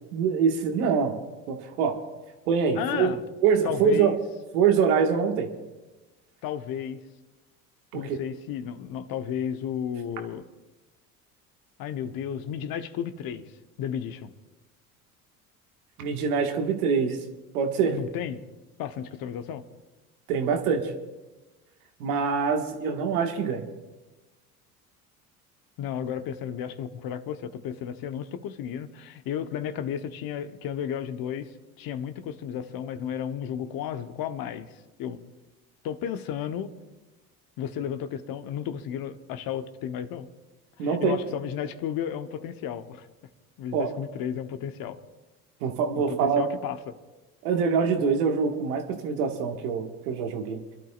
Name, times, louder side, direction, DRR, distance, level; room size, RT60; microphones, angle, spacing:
voice 1, 0.1-1.2 1.5-1.9 2.5-3.1 3.4-4.1 4.5-5.5 7.9-8.2 16.0-17.2 17.5-18.0 20.3-20.9 22.0-23.7 40.8-41.2 43.7-43.9 45.6-46.4 47.4-50.6, right 6 dB, 75° right, 3 dB, 1.9 m, -24 dB
voice 2, 2.8-3.2 3.6-4.2 6.4-7.0 7.9-10.4 11.8-13.5 13.8-14.3 17.9-18.4 18.8-19.6 25.8-31.5 31.8-35.2 35.8-36.7 37.6-40.3 40.8-43.1 43.6-45.0 45.9-46.9, left 9 dB, 50° left, 9 dB, 1.1 m, -33 dB
29.5 x 12.0 x 2.5 m, 1.1 s
hypercardioid pair, 70°, 45 cm